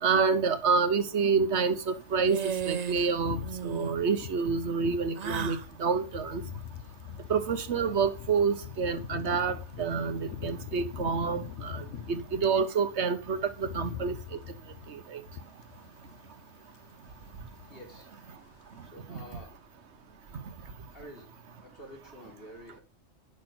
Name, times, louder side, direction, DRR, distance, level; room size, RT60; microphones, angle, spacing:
voice 1, 0.0-6.4 7.3-14.4 14.9-15.2, right 5 dB, 70° right, 1.3 m, -28 dB
sound 1, 1.7-12.7 13.0-16.4 16.7-17.0 17.3-18.1 18.3-18.6, left 8 dB, 90° left, 1.1 m, -43 dB
sound 2, 2.3-3.1 3.4-3.9 5.2-5.7, right 7 dB, 45° right, 0.6 m, -34 dB
voice 2, 17.7-18.1 18.8-19.6 20.9-21.3 21.6-22.8, equal, 50° left, 4.0 m, -48 dB
11.0 x 6.4 x 6.0 m
omnidirectional pair, 1.2 m